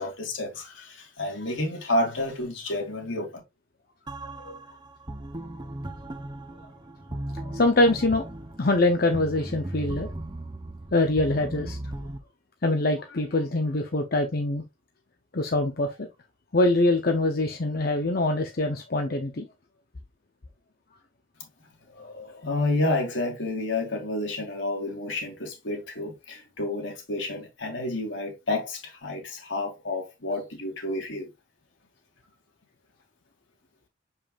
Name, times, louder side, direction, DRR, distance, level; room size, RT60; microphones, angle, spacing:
voice 1, 0.0-3.3 22.4-31.3, left 2 dB, 70° left, 2.8 m, -30 dB
sound 1, 4.1-12.2, right 1 dB, 20° right, 0.8 m, -37 dB
voice 2, 7.5-8.2 8.6-10.1 10.9-11.8 12.6-14.6 15.3-16.1 16.5-19.4 22.0-22.4, left 2 dB, 50° left, 0.8 m, -24 dB
7.0 x 5.6 x 2.5 m
head